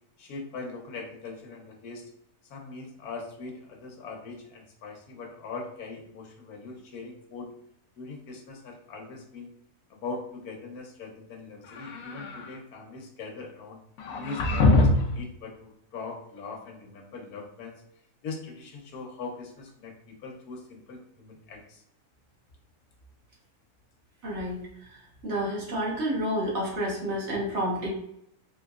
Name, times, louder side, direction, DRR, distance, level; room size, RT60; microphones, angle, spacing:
voice 1, 0.2-2.0 2.5-7.5 8.0-9.5 9.9-13.8 14.2-17.7 18.2-21.8, left 4 dB, 90° left, 1 dB, 1.3 m, -41 dB
sound 1, 11.6-12.5 14.0-15.2, left 2 dB, 75° left, 1.0 m, -23 dB
voice 2, 24.2-25.0 25.2-27.9, equal, 50° right, -3 dB, 1.3 m, -30 dB
4.0 x 3.0 x 2.4 m, 0.75 s
omnidirectional pair, 1.6 m